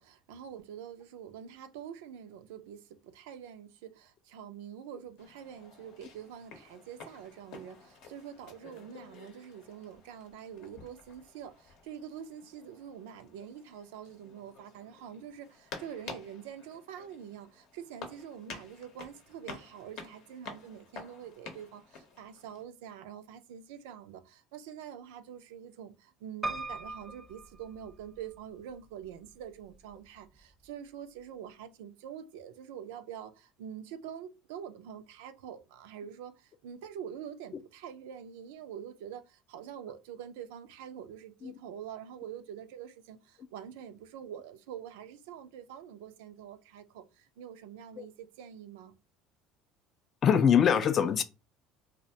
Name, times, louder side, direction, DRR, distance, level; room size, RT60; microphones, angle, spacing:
voice 1, 0.0-48.9, right 9 dB, 85° right, 0.3 m, -45 dB
sound 1, 5.2-22.6, left 4 dB, 70° left, 0.7 m, -50 dB
Piano, 26.4-28.4 29.0-29.7 30.1-30.2 30.4-30.5, right 2 dB, 10° right, 0.5 m, -39 dB
voice 2, 50.2-51.2, left 8 dB, 45° left, 0.3 m, -23 dB
2.4 x 2.1 x 2.7 m
supercardioid pair, 90°, 0 cm